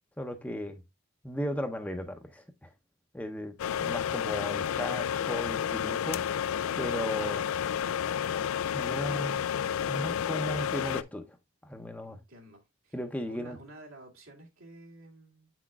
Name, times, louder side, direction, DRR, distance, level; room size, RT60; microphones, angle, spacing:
voice 1, 0.2-0.8 1.2-2.7 3.1-6.2 6.8-7.6 8.7-9.5 9.9-11.4 11.6-12.2 12.9-13.6, equal, 5° left, 0.6 m, -36 dB
sound 1, 3.6-11.0, left 8 dB, 90° left, 0.3 m, -31 dB
voice 2, 12.1-12.9 13.3-15.5, right 1 dB, 85° right, 2.1 m, -51 dB
7.1 x 5.9 x 2.3 m
head